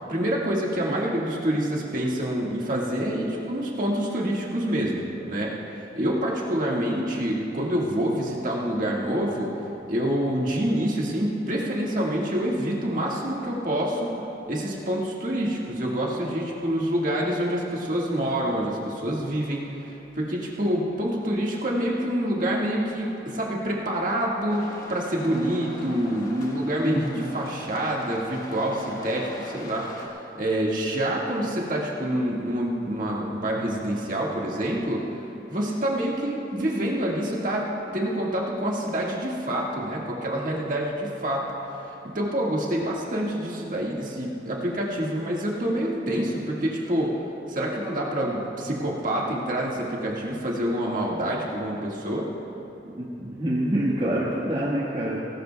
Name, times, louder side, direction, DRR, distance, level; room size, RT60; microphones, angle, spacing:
voice 1, 0.1-9.5 9.9-14.1 14.5-35.0 35.5-47.2 47.5-52.3, right 1 dB, 50° right, -3 dB, 1.8 m, -27 dB
sound 1, 24.5-30.1, left 1 dB, 50° left, 1.2 m, -41 dB
voice 2, 26.8-27.3 52.9-55.2, right 1 dB, 35° right, -6 dB, 1.5 m, -26 dB
19.0 x 17.0 x 2.3 m, 2.9 s
head